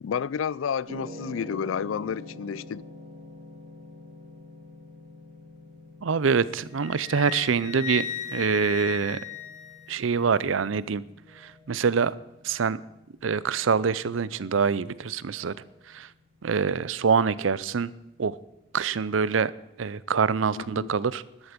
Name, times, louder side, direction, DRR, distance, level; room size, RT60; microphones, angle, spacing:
voice 1, 0.0-2.8 20.6-20.9, left 7 dB, 90° left, 0.4 m, -30 dB
sound 1, 0.9-19.1, left 1 dB, 40° right, 2.1 m, -48 dB
voice 2, 6.0-9.2 9.9-11.0 11.3-12.1 12.4-12.8 13.2-15.6 15.9-16.1 16.4-17.9 18.2-18.4 18.7-19.5 19.8-21.5, right 5 dB, 85° right, 0.5 m, -25 dB
sound 2, 6.3-6.8 7.3-7.8 8.3-8.8 9.3-9.8 10.3-10.8 11.3-11.8 12.3-12.8 13.3-13.8 14.3-14.8 15.3-15.8, left 2 dB, 10° left, 3.1 m, -60 dB
Wind instrument woodwind instrument, 6.8-10.2, left 9 dB, 40° left, 0.8 m, -36 dB
13.0 x 12.5 x 5.2 m
head